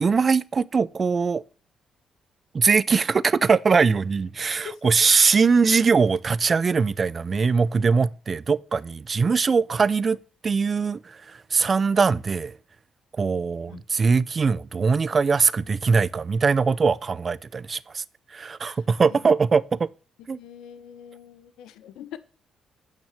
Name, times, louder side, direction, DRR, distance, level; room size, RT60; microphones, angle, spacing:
voice 1, 0.0-1.4 2.5-10.2 10.4-12.6 13.2-18.0 18.3-19.9 20.3-20.4, right 5 dB, 35° right, 0.5 m, -21 dB
voice 2, 4.6-5.1 13.7-13.8 18.6-19.3 20.3-22.2, left 9 dB, 90° left, 1.1 m, -43 dB
8.9 x 6.1 x 7.4 m
cardioid pair, 90°, 0 cm